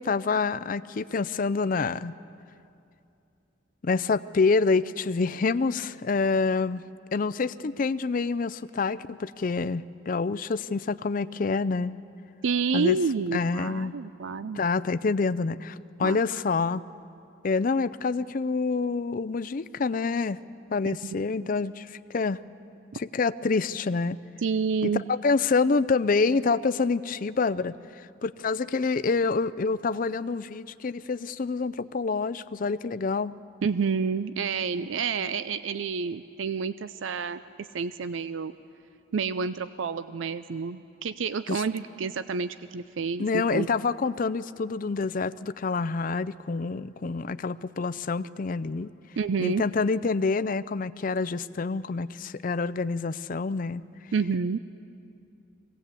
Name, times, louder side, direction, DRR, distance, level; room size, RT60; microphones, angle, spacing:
voice 1, 0.0-2.1 3.8-6.8 7.1-11.9 12.7-13.0 13.3-14.0 14.5-16.8 17.4-20.4 20.7-22.4 23.0-24.2 24.8-24.9 25.2-27.8 28.2-33.3 41.5-41.6 43.2-48.9 49.4-53.8, left 4 dB, 45° left, 15 dB, 0.4 m, -27 dB
voice 2, 12.4-14.6 16.0-16.2 21.0-21.2 21.4-21.5 24.4-25.0 33.6-38.5 39.1-43.7 49.2-49.6 54.1-54.6, right 5 dB, 75° right, 13 dB, 0.5 m, -29 dB
22.0 x 17.5 x 8.3 m, 2.6 s
head